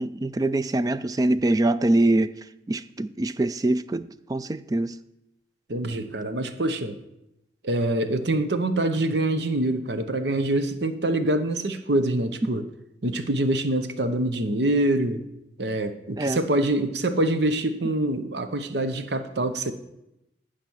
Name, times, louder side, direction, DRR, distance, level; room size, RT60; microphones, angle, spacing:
voice 1, 0.0-2.3 2.7-5.0 16.2-16.4, right 2 dB, 20° right, 14 dB, 0.3 m, -24 dB
voice 2, 5.7-7.0 7.6-12.6 13.0-15.3 15.6-19.7, right 1 dB, 70° right, 9 dB, 0.9 m, -25 dB
15.0 x 5.1 x 6.2 m, 0.88 s
head